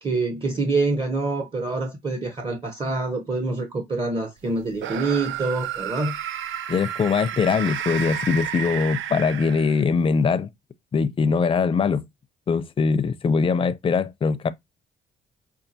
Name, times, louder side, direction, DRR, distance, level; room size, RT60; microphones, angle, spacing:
voice 1, 0.0-6.2, right 3 dB, 25° right, 0.7 m, -26 dB
sound 1, 4.8-10.0, right 9 dB, 75° right, 0.5 m, -31 dB
voice 2, 6.7-10.5 10.9-12.0 12.5-14.5, left 5 dB, 25° left, 0.4 m, -22 dB
5.5 x 2.3 x 2.6 m
cardioid pair, 90°, 20 cm